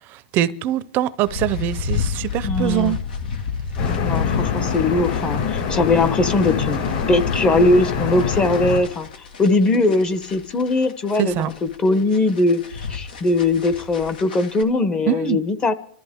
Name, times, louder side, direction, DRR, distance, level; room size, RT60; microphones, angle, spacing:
voice 1, 0.1-3.0 11.2-11.5 15.1-15.4, right 12 dB, 40° right, 0.6 m, -23 dB
sound 1, 1.2-14.6, left 6 dB, 85° left, 1.8 m, -31 dB
voice 2, 2.4-3.0 4.0-9.1 9.4-15.7, left 2 dB, 20° left, 0.9 m, -20 dB
ceiling fan high speed smooth, 3.8-8.8, left 6 dB, 65° left, 6.2 m, -24 dB
29.0 x 13.0 x 3.6 m
supercardioid pair, 130°, 5 cm